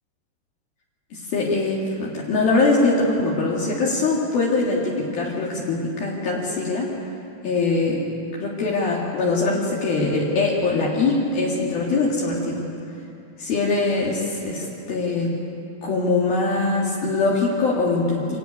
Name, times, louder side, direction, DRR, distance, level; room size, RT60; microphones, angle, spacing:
voice 1, 1.1-7.0 7.4-8.0 8.4-12.7 13.4-15.3 15.8-18.4, left 3 dB, 60° left, -4 dB, 3.7 m, -22 dB
25.5 x 14.0 x 9.6 m, 2.7 s
omnidirectional pair, 5.0 m